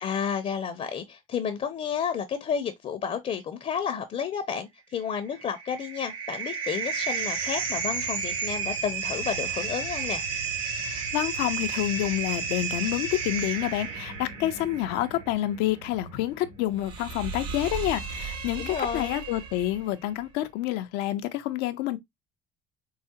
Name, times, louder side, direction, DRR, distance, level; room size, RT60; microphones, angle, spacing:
voice 1, 0.0-10.2 18.6-19.2, left 7 dB, 40° left, 0.6 m, -31 dB
sound 1, 5.3-19.8, right 5 dB, 80° right, 2.2 m, -33 dB
voice 2, 10.8-22.0, left 14 dB, 85° left, 0.5 m, -28 dB
4.6 x 2.0 x 2.7 m
cardioid pair, 95°, 17 cm